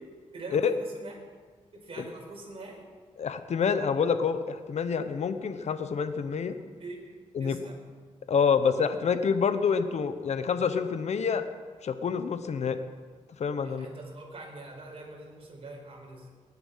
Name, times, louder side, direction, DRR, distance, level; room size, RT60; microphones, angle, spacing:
voice 1, 0.3-1.2 1.7-2.9 6.7-7.8 13.6-16.3, right 2 dB, 45° right, -1 dB, 5.3 m, -44 dB
voice 2, 3.2-6.5 7.3-7.6 8.3-11.4 11.8-12.8 13.4-13.9, left 6 dB, 60° left, 10 dB, 1.0 m, -27 dB
20.0 x 11.0 x 5.7 m, 1.5 s
cardioid pair, 85°, 13 cm